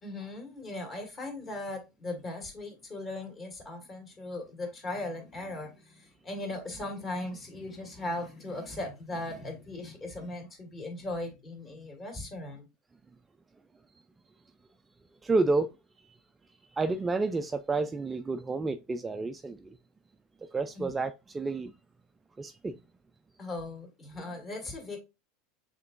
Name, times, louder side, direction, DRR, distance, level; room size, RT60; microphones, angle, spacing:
voice 1, 0.0-12.7 20.7-20.9 23.4-25.0, left 2 dB, 30° left, 2.0 m, -38 dB
voice 2, 15.2-15.7 16.7-19.6 20.5-21.7 22.4-22.8, right 3 dB, 15° right, 0.3 m, -30 dB
5.8 x 3.7 x 2.5 m
supercardioid pair, 120°, 0 cm